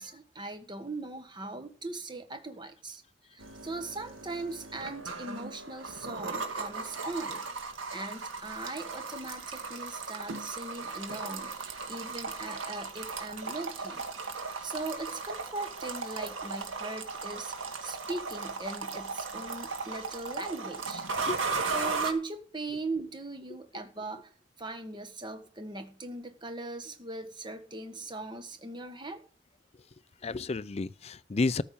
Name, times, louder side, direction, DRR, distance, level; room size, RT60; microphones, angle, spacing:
voice 1, 0.0-3.0 3.3-7.4 7.9-14.0 14.4-21.0 21.7-24.3 24.6-29.2, right 2 dB, 25° right, 1.5 m, -39 dB
sound 1, 3.4-22.1, right 4 dB, 85° right, 2.0 m, -37 dB
voice 2, 21.2-21.7 30.2-31.6, left 3 dB, 35° left, 0.4 m, -32 dB
13.5 x 5.6 x 6.9 m
head